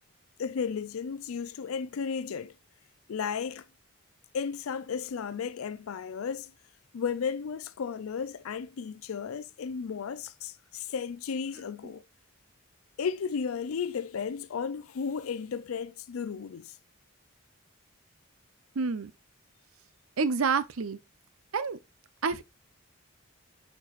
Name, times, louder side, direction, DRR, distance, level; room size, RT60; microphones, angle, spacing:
voice 1, 0.4-2.5 3.1-3.6 4.3-6.5 6.9-12.0 13.0-16.8, left 6 dB, 80° left, 0.4 m, -34 dB
voice 2, 18.8-19.1 20.2-21.0 21.5-21.8 22.2-22.4, right 5 dB, 85° right, 0.6 m, -28 dB
8.9 x 4.5 x 2.4 m
head